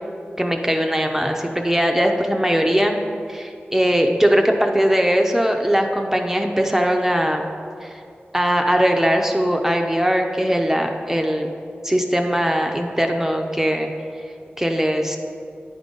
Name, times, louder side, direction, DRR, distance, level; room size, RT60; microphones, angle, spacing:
voice 1, 0.4-3.0 3.3-7.5 7.8-7.9 8.3-11.5 11.8-13.9 14.6-15.2, equal, 10° right, 3 dB, 0.6 m, -20 dB
9.5 x 3.8 x 5.3 m, 2.4 s
wide cardioid pair, 50°, 4 cm